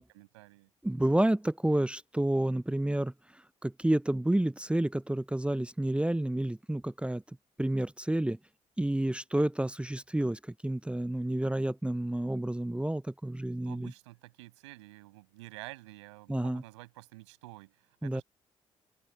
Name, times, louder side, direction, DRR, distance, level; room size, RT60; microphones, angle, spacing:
voice 1, 0.0-0.7 13.6-18.2, right 21 dB, 75° right, 8.0 m, -50 dB
voice 2, 0.8-7.2 7.6-8.4 8.8-13.9 16.3-16.6 18.0-18.2, right 1 dB, 5° right, 0.8 m, -30 dB
open air
figure-of-eight pair, 45°, 15 cm